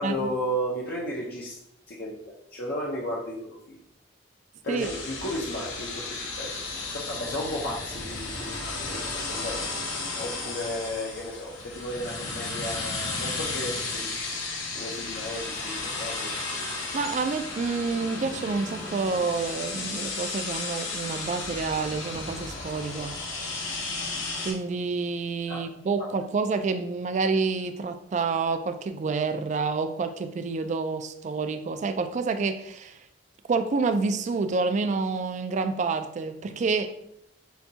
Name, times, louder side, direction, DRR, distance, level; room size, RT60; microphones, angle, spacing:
voice 1, 0.0-1.6 1.9-2.1 2.5-3.8 4.6-6.0 6.4-6.5 6.9-9.6 10.2-14.4 14.7-16.3 25.5-25.7, equal, 55° left, -4 dB, 0.6 m, -34 dB
sound 1, 4.8-24.5, left 3 dB, 75° left, 1.0 m, -34 dB
voice 2, 16.9-23.2 24.4-33.0 33.5-36.9, right 4 dB, 40° right, 9 dB, 0.3 m, -28 dB
6.8 x 2.3 x 2.8 m, 0.76 s
head